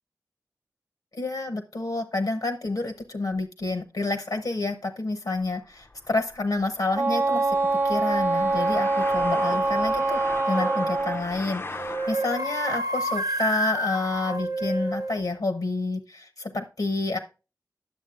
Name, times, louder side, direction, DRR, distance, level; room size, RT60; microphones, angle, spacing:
voice 1, 1.1-7.6 7.8-10.2 10.5-17.2, left 3 dB, 75° left, 7 dB, 0.7 m, -29 dB
sound 1, 5.4-12.5, left 2 dB, 35° left, 0.4 m, -38 dB
Wind instrument woodwind instrument, 6.9-11.2, right 3 dB, 35° right, 0.9 m, -24 dB
sound 2, 10.5-11.0 11.7-15.2, right 1 dB, 60° right, 0.6 m, -29 dB
10.5 x 7.2 x 2.4 m, 0.31 s
wide cardioid pair, 50°, 7 cm